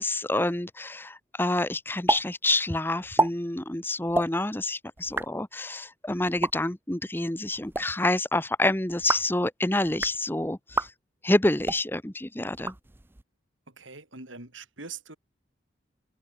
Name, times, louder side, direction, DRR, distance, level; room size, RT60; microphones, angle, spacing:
voice 1, 0.0-10.9 11.2-12.7, left 2 dB, 10° left, 0.9 m, -28 dB
sound 1, 2.1-2.2 2.5-2.6 3.0-3.3 4.1-4.3 5.0-5.3 6.3-6.5 7.5-7.8 8.9-9.3 9.9-10.2 10.7-10.9 11.6-11.8 12.5-13.2, right 2 dB, 10° right, 0.5 m, -28 dB
voice 2, 13.7-15.2, right 4 dB, 90° right, 6.8 m, -43 dB
head